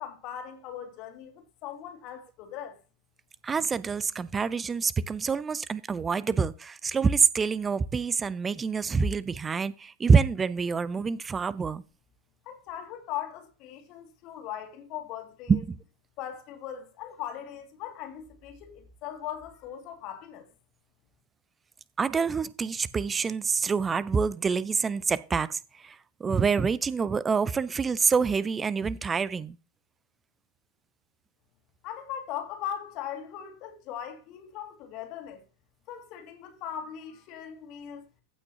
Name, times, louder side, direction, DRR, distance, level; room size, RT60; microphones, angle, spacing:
voice 1, 0.0-2.8 12.5-15.6 16.2-20.5 31.8-35.4 35.9-38.0, left 10 dB, 40° left, 2.1 m, -39 dB
voice 2, 3.4-11.8 15.5-15.8 22.0-29.6, right 5 dB, 15° right, 0.4 m, -26 dB
15.5 x 6.0 x 2.8 m
figure-of-eight pair, 90°, 0 cm